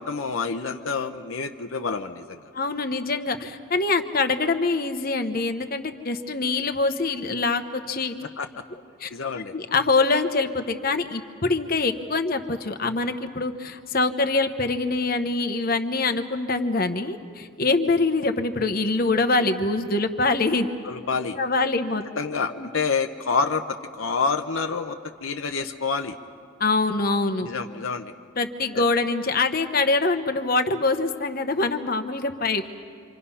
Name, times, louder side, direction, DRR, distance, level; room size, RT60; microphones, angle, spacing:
voice 1, 0.0-2.4 8.4-8.5 9.1-9.5 20.8-21.4 22.2-26.2 27.4-28.1 28.7-28.8, left 4 dB, 70° left, 5 dB, 0.8 m, -28 dB
voice 2, 2.5-8.2 9.0-9.1 9.5-20.7 21.4-22.0 22.6-22.7 26.6-27.5 28.4-32.8, left 3 dB, 45° left, 7 dB, 1.0 m, -24 dB
26.5 x 26.5 x 5.6 m, 2.2 s
head